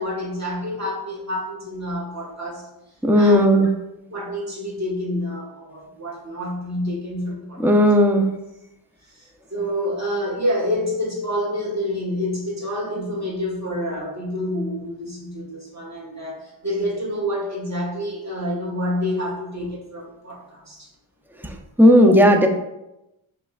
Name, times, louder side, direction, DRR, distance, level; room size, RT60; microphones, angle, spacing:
voice 1, 0.0-2.7 3.1-3.4 4.1-7.8 9.1-20.9, left 1 dB, 35° right, -3 dB, 1.5 m, -28 dB
voice 2, 3.0-3.7 7.6-8.3 21.4-22.5, equal, 5° right, 4 dB, 0.5 m, -15 dB
5.5 x 3.3 x 2.4 m, 0.92 s
wide cardioid pair, 55°, 50 cm